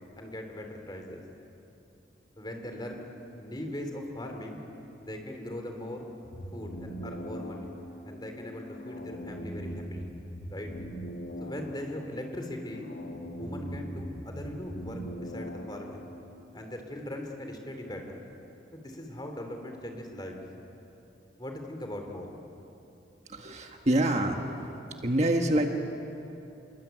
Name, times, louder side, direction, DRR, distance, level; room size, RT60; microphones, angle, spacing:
voice 1, 0.2-1.2 2.4-3.1 3.4-4.6 5.0-6.1 6.5-7.7 8.0-10.1 10.5-10.7 11.4-12.9 13.4-16.1 16.5-18.2 18.7-20.4 21.4-22.3, left 1 dB, 25° left, 3 dB, 3.3 m, -40 dB
sound 1, 6.2-16.2, equal, 60° left, 3.3 m, -41 dB
voice 2, 23.3-24.4 25.0-25.7, right 1 dB, 35° right, 3 dB, 1.5 m, -26 dB
26.5 x 22.5 x 9.3 m, 2.9 s
head